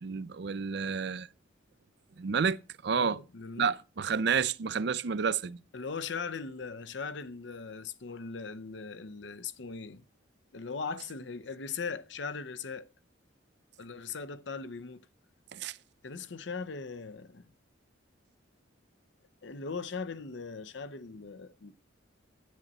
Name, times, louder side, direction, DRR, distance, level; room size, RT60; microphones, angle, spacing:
voice 1, 0.0-1.3 2.2-2.6 2.8-3.2 3.6-5.6 15.5-15.8, right 6 dB, 60° right, 0.5 m, -30 dB
voice 2, 3.0-3.7 5.7-10.0 10.5-12.9 13.8-15.0 16.0-17.4 19.4-21.7, left 5 dB, 65° left, 0.7 m, -39 dB
10.5 x 8.8 x 4.1 m
head